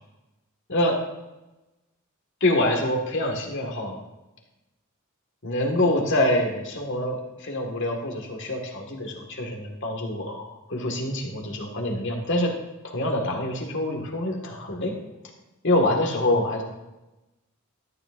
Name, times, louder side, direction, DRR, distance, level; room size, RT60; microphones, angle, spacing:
voice 1, 2.4-4.0 5.4-12.5 12.8-14.9 15.6-16.6, left 1 dB, 60° left, 1 dB, 1.9 m, -25 dB
13.5 x 10.0 x 2.6 m, 1.0 s
head